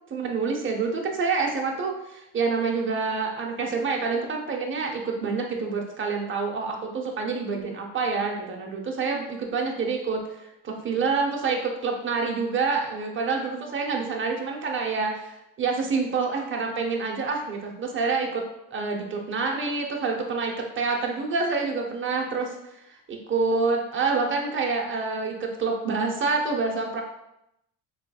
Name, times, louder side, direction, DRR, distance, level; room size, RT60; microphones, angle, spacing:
voice 1, 0.1-10.2 10.6-18.4 18.7-22.5 23.1-27.0, right 4 dB, 25° right, 1 dB, 0.7 m, -27 dB
3.8 x 3.3 x 2.3 m, 0.83 s
supercardioid pair, 90°, 50 cm